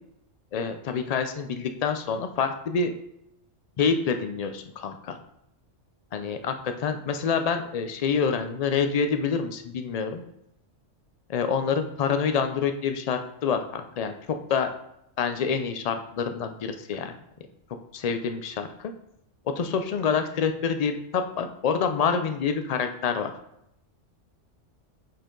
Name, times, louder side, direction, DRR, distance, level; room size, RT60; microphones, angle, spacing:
voice 1, 0.5-2.9 3.8-5.2 6.1-10.2 11.3-14.1 14.5-14.7 15.2-17.2 17.9-18.9 19.6-23.3, left 6 dB, 85° left, 7 dB, 0.3 m, -27 dB
7.5 x 4.5 x 3.8 m, 0.80 s
omnidirectional pair, 1.3 m